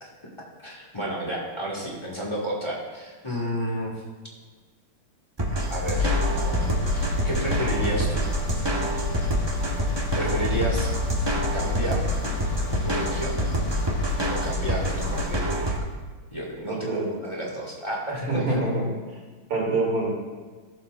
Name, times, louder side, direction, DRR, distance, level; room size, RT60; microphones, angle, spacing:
voice 1, 0.6-4.0 5.7-8.4 10.1-10.9 11.5-12.0 12.8-13.4 14.3-15.9 16.3-18.6, equal, 15° left, -4 dB, 1.5 m, -31 dB
sound 1, 5.4-15.8, right 1 dB, 30° right, 0.5 m, -27 dB
sound 2, 5.9-15.3, left 3 dB, 60° left, 1.4 m, -30 dB
voice 2, 16.7-17.0 18.3-18.9 19.5-20.2, right 2 dB, 80° right, -3 dB, 3.3 m, -25 dB
15.0 x 7.0 x 2.5 m, 1.4 s
omnidirectional pair, 2.3 m